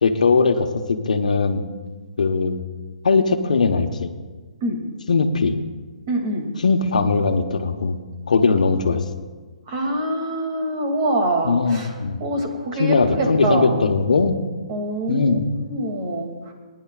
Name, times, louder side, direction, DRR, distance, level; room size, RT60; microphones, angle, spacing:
voice 1, 0.0-1.6 2.2-2.6 3.0-4.1 5.1-5.5 6.6-8.0 8.3-9.0 11.4-12.2 12.8-14.4 15.1-15.5, left 4 dB, 80° left, 6 dB, 1.1 m, -19 dB
voice 2, 6.1-6.5 9.7-13.8 14.7-16.5, right 1 dB, 40° right, 2 dB, 2.5 m, -25 dB
23.5 x 10.0 x 2.4 m, 1.4 s
hypercardioid pair, 150°, 4 cm